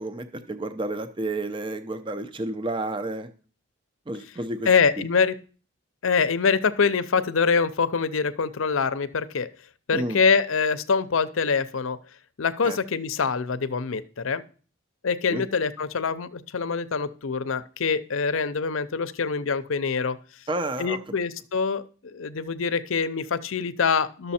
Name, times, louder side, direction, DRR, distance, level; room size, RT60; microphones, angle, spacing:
voice 1, 0.0-3.3 4.1-4.7 9.9-10.2 12.6-12.8 15.3-15.4 20.5-21.0, right 2 dB, 25° right, 10 dB, 0.6 m, -30 dB
voice 2, 4.6-5.3 6.0-9.5 9.9-12.0 12.4-14.4 15.0-20.2 20.8-24.3, left 5 dB, 75° left, 13 dB, 0.6 m, -24 dB
12.0 x 6.8 x 4.2 m, 0.40 s
head